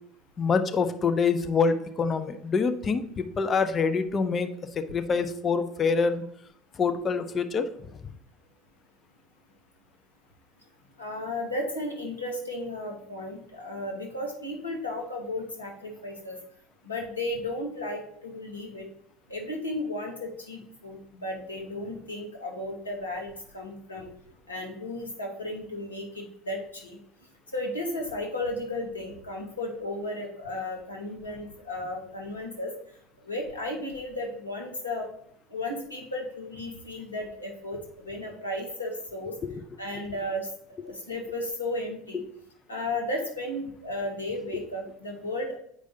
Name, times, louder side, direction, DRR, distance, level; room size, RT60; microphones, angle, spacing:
voice 1, 0.4-4.5 4.8-6.2 6.8-7.9 39.4-39.5, left 5 dB, 30° left, 9 dB, 0.6 m, -26 dB
voice 2, 11.0-16.4 16.8-18.9 19.3-24.1 24.5-27.0 27.5-32.7 33.2-35.1 35.5-39.3 39.8-40.5 40.8-42.2 42.7-45.6, left 1 dB, 90° left, 0 dB, 1.2 m, -34 dB
7.7 x 4.8 x 2.7 m, 0.72 s
figure-of-eight pair, 70°, 0 cm